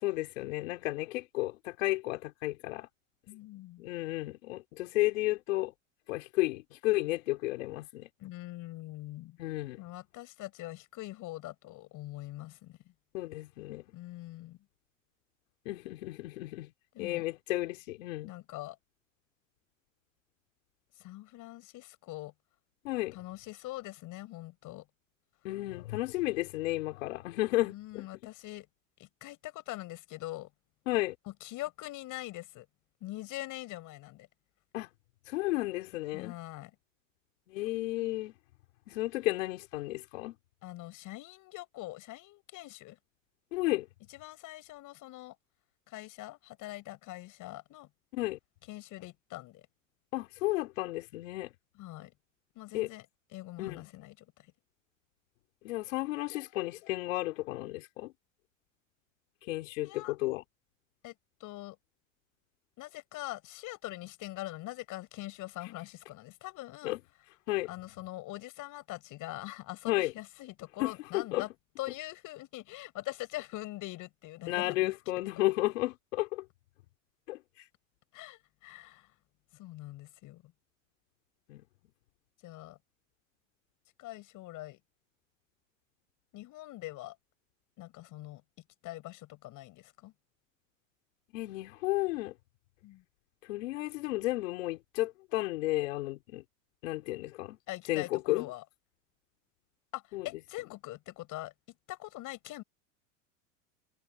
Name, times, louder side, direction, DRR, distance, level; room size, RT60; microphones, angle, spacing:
voice 1, 0.0-2.9 3.8-5.7 6.1-8.1 9.4-9.8 13.1-13.8 15.7-16.7 17.0-18.3 22.8-23.2 25.4-28.0 30.9-31.1 34.7-34.9 35.3-36.3 37.5-38.3 38.9-40.3 43.5-43.9 48.1-48.4 50.1-51.5 52.7-52.9 53.6-53.9 55.6-58.1 59.4-60.4 66.8-67.0 67.5-67.7 69.9-70.1 70.8-71.4 74.5-76.4 77.3-77.6 81.5-81.6 91.3-92.3 93.4-96.4 96.8-97.6 97.9-98.5 100.1-100.3, left 18 dB, 75° left, 4.2 m, -33 dB
voice 2, 3.3-3.9 8.2-9.4 9.8-12.8 13.9-14.6 16.9-17.2 18.2-18.8 21.0-22.3 23.1-24.8 27.6-28.7 29.0-30.5 31.3-32.7 33.0-34.3 36.1-36.7 40.6-43.0 44.1-45.3 45.9-47.9 48.7-49.6 51.7-52.1 52.5-53.0 53.3-54.5 59.8-60.2 61.0-61.1 61.4-61.8 62.8-66.9 67.7-71.5 71.8-74.9 78.1-79.1 79.5-80.5 82.4-82.8 84.0-84.8 86.3-87.1 87.8-88.4 88.8-90.1 92.8-93.0 97.7-98.6 99.9-101.5 101.9-102.6, left 17 dB, 50° left, 6.6 m, -43 dB
hypercardioid pair, 100°, 39 cm